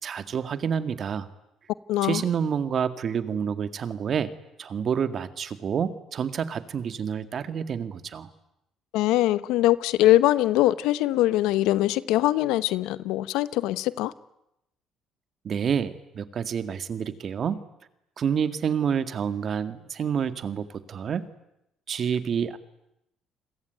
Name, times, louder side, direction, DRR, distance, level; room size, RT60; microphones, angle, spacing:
voice 1, 0.0-1.3 2.0-4.3 4.6-8.3 15.4-17.6 18.2-21.3 21.9-22.6, right 7 dB, 50° right, 2.0 m, -28 dB
voice 2, 1.9-2.2 8.9-14.1, left 15 dB, 90° left, 1.0 m, -22 dB
29.0 x 22.0 x 9.3 m
cardioid pair, 105°, 0 cm